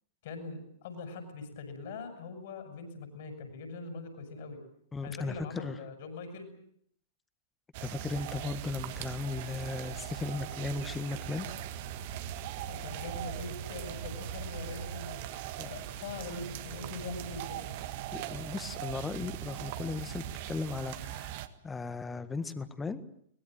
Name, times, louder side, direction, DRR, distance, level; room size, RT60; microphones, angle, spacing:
voice 1, 0.2-4.6 5.0-6.5 12.7-15.2 15.7-17.7, left 3 dB, 55° left, 7 dB, 6.5 m, -42 dB
voice 2, 4.9-5.8 7.8-11.5 15.6-15.7 18.1-23.0, left 4 dB, 15° left, 12 dB, 1.7 m, -37 dB
sound 1, 7.7-21.5, right 11 dB, 45° right, 1.7 m, -40 dB
23.0 x 20.5 x 9.0 m, 0.68 s
figure-of-eight pair, 105°, 0 cm